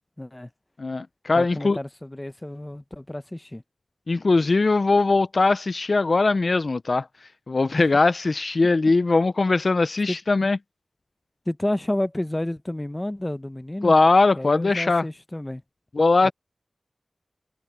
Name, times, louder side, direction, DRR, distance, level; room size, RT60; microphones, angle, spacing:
voice 1, 0.2-0.5 1.3-3.6 10.1-10.2 11.5-13.9 14.4-15.6 16.2-16.3, left 1 dB, 20° left, 0.8 m, -30 dB
voice 2, 0.8-1.8 4.1-7.1 7.5-10.6 13.8-15.1 15.9-16.3, left 3 dB, 55° left, 0.4 m, -20 dB
wide cardioid pair, 90°, 0 cm